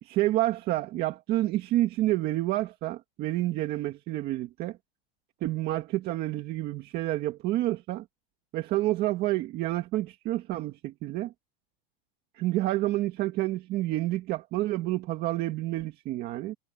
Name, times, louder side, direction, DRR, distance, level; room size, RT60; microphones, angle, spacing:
voice 1, 0.0-4.8 5.4-8.0 8.5-11.3 12.3-16.6, right 16 dB, 30° right, 1.9 m, -29 dB
supercardioid pair, 165°, 30 cm